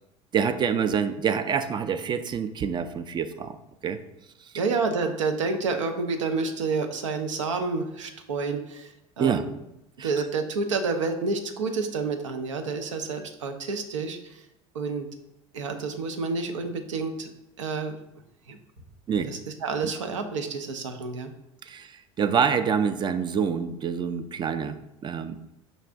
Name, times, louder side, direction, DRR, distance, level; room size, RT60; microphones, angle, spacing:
voice 1, 0.3-3.6 3.8-4.0 9.2-9.4 10.0-10.1 19.1-19.3 21.7-21.9 22.2-24.8 25.0-25.4, right 7 dB, 30° right, 10 dB, 0.3 m, -26 dB
voice 2, 4.5-9.5 10.0-14.4 14.7-15.1 15.5-17.3 17.6-18.0 18.5-18.6 19.3-21.3, right 4 dB, 90° right, 6 dB, 0.5 m, -29 dB
5.2 x 2.4 x 3.4 m, 0.85 s
hypercardioid pair, 75°, 16 cm